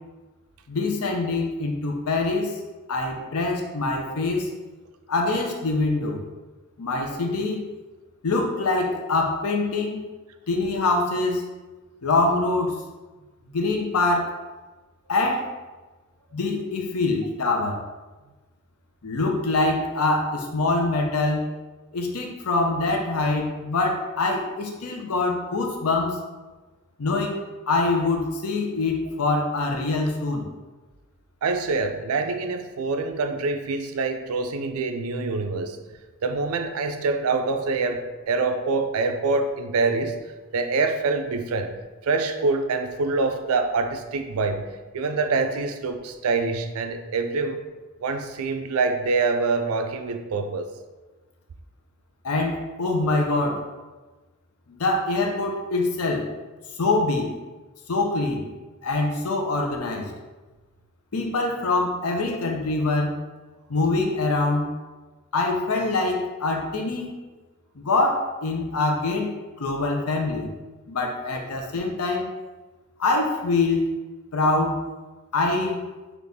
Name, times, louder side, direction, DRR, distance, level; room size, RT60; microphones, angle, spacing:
voice 1, 0.7-2.6 2.9-4.5 5.1-6.2 6.8-7.7 8.2-10.1 10.5-11.5 12.0-12.8 13.5-14.4 15.1-15.5 16.3-17.8 19.0-21.5 21.9-26.2 27.0-27.4 27.7-30.5 52.2-53.6 54.7-56.3 56.8-57.4 57.9-58.5 58.8-60.1 61.1-63.1 63.7-64.7 65.3-67.2 67.8-70.5 70.9-72.3 73.0-73.9 74.3-74.8 75.3-75.8, left 3 dB, 85° left, 1 dB, 0.7 m, -24 dB
voice 2, 31.4-35.8 36.2-40.2 40.5-41.7 42.0-44.7 44.9-47.7 48.0-50.7, right 3 dB, 80° right, 7 dB, 0.4 m, -25 dB
4.0 x 3.0 x 3.5 m, 1.2 s
head